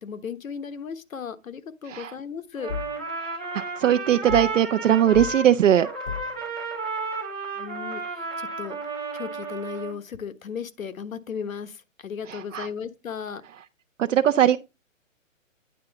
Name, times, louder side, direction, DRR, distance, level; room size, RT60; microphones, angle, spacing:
voice 1, 0.0-2.8 7.6-8.8 9.1-13.4, left 6 dB, 85° left, 1.3 m, -36 dB
Trumpet, 2.6-5.5 5.8-9.9, right 4 dB, 5° right, 0.5 m, -33 dB
sound 1, 2.7-3.0 4.3-4.6 5.1-5.4 6.0-6.4, left 8 dB, 60° left, 0.8 m, -33 dB
voice 2, 3.2-5.9 12.3-12.7 14.0-14.6, right 10 dB, 70° right, 0.7 m, -20 dB
9.5 x 3.8 x 6.9 m
hypercardioid pair, 165°, 40 cm